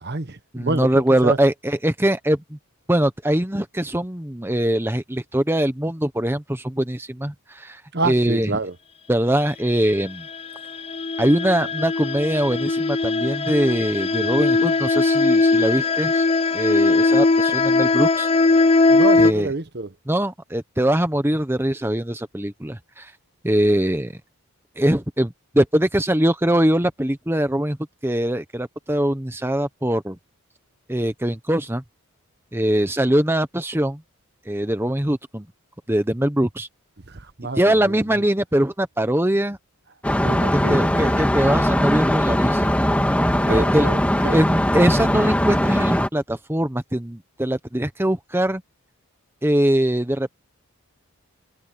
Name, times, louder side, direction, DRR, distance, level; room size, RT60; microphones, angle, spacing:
voice 1, 0.0-0.9 1.2-1.4 7.9-8.7 18.9-19.9 37.1-38.0 40.2-41.2 43.5-44.0 44.2-44.4, right 3 dB, 45° right, 1.1 m, -27 dB
voice 2, 0.5-2.6 2.9-8.5 9.1-10.2 11.2-16.3 16.5-18.3 19.2-19.5 20.1-23.1 23.4-24.1 24.8-27.8 28.0-30.2 30.9-31.8 32.5-34.0 34.5-35.5 35.9-36.7 37.5-39.6 40.5-42.7 43.5-43.9 44.3-48.6 49.4-50.4, right 1 dB, 10° right, 0.9 m, -22 dB
sound 1, 10.3-19.3, left 3 dB, 25° left, 0.5 m, -19 dB
sound 2, 40.0-46.1, equal, 5° left, 1.6 m, -20 dB
head